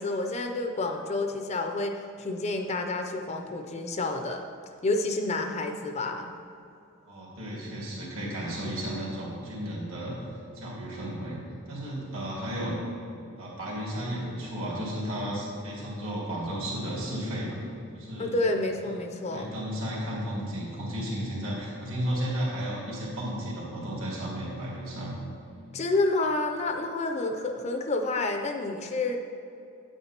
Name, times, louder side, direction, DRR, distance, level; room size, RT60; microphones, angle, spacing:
voice 1, 0.0-4.5 4.8-6.3 18.2-19.5 25.7-29.2, left 2 dB, 30° left, 4 dB, 0.4 m, -29 dB
voice 2, 7.0-10.2 10.5-12.8 13.4-17.6 17.9-18.3 18.9-19.0 19.3-25.2, equal, 65° right, -5 dB, 2.0 m, -33 dB
8.9 x 8.8 x 2.9 m, 2.7 s
head